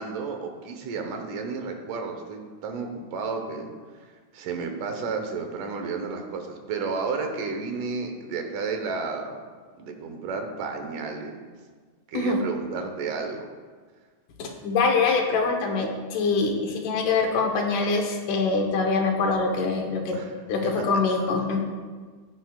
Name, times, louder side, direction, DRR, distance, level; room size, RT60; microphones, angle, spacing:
voice 1, 0.0-3.7 4.0-9.4 9.8-11.5 12.1-13.5 20.1-20.3, right 4 dB, 85° right, 4 dB, 2.7 m, -32 dB
voice 2, 14.4-20.2 20.5-21.7, left 4 dB, 80° left, 2 dB, 2.7 m, -24 dB
15.5 x 9.8 x 2.4 m, 1.5 s
omnidirectional pair, 3.6 m